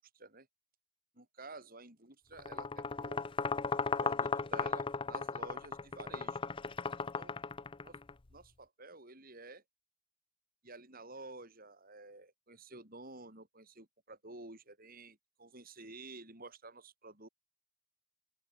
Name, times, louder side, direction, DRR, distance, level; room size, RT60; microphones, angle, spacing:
voice 1, 0.1-0.5 1.1-3.3 4.0-6.4 7.0-7.4 7.8-8.0 8.3-9.6 10.6-17.3, right 2 dB, 40° right, 6.7 m, -51 dB
sound 1, 2.4-8.1, left 4 dB, 25° left, 0.5 m, -36 dB
open air
head